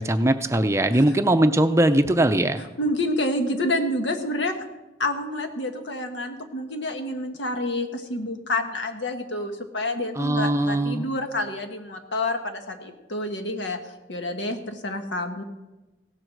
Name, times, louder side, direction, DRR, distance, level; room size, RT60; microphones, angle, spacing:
voice 1, 0.0-2.6 10.2-11.1, right 1 dB, 15° right, 9 dB, 0.5 m, -20 dB
voice 2, 2.6-4.5 5.0-13.8 14.1-15.4, left 1 dB, 90° left, 5 dB, 1.5 m, -28 dB
16.5 x 7.8 x 6.5 m, 1.1 s
head